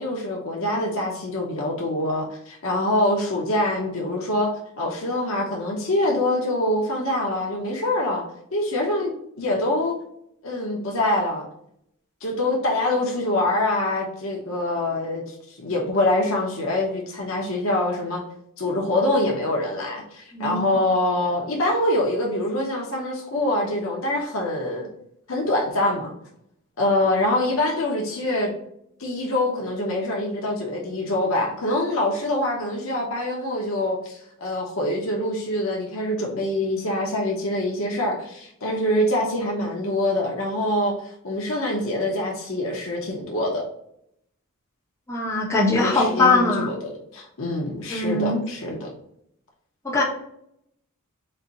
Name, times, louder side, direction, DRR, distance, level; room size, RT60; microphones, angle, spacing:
voice 1, 0.0-8.3 8.5-9.9 10.4-11.4 12.2-18.2 18.6-24.9 25.3-26.1 26.8-28.5 29.0-43.6 45.8-46.7 47.1-48.9, left 1 dB, 60° left, -1 dB, 0.8 m, -25 dB
voice 2, 20.3-20.7 45.1-46.7 47.9-48.4 49.8-50.0, left 2 dB, 10° left, -7 dB, 1.4 m, -21 dB
4.3 x 2.6 x 4.0 m, 0.73 s
head